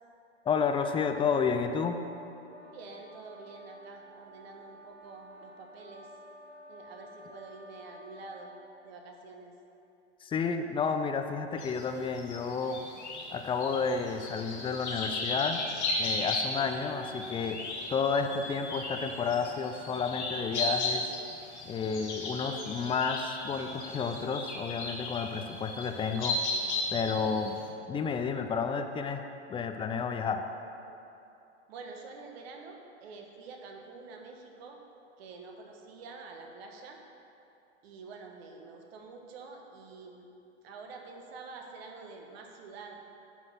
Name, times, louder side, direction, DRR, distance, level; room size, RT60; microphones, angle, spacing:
voice 1, 0.5-2.0 10.2-12.8 13.3-15.6 16.0-17.6 17.9-21.1 21.7-26.4 26.9-27.6 27.9-29.2 29.5-30.4, left 5 dB, 15° left, 7 dB, 0.5 m, -31 dB
sound 1, 2.4-8.7, left 1 dB, 30° right, 1.5 m, -52 dB
voice 2, 2.7-6.1 6.7-8.5 8.8-9.5 31.7-34.8 35.2-37.0 37.8-40.3 40.6-43.0, right 4 dB, 65° right, 2 dB, 1.4 m, -47 dB
sound 2, 11.6-27.7, left 2 dB, 80° left, 1.8 m, -36 dB
10.0 x 4.0 x 6.0 m, 2.8 s
hypercardioid pair, 105°, 34 cm